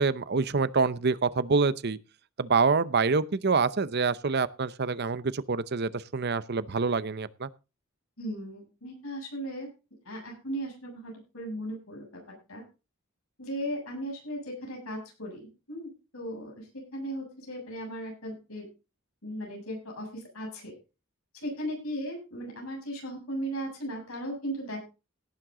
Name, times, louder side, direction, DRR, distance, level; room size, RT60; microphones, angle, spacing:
voice 1, 0.0-2.0 2.4-7.5, right 4 dB, 50° right, 16 dB, 0.7 m, -26 dB
voice 2, 8.2-9.7 10.1-12.6 13.4-18.7 19.2-20.7 21.3-24.8, equal, 85° left, 0 dB, 7.4 m, -37 dB
17.5 x 7.7 x 3.8 m, 0.30 s
head